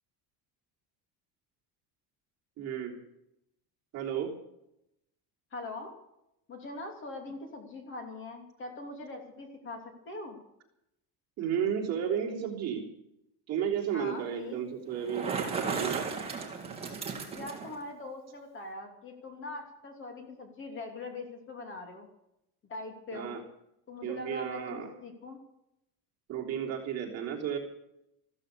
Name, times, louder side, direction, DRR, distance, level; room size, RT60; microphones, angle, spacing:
voice 1, 2.6-3.0 3.9-4.3 11.4-12.9 13.5-16.1 23.1-23.4 24.0-24.9 26.3-27.6, right 8 dB, 40° right, -1 dB, 3.5 m, -33 dB
voice 2, 5.5-5.9 6.5-10.4 13.9-14.6 17.3-22.1 22.7-23.4 23.9-25.4, left 2 dB, 30° left, 4 dB, 2.9 m, -42 dB
Bicycle, 14.9-17.8, right 5 dB, 15° right, 2.6 m, -35 dB
15.0 x 14.0 x 6.7 m, 0.82 s
cardioid pair, 180°, 41 cm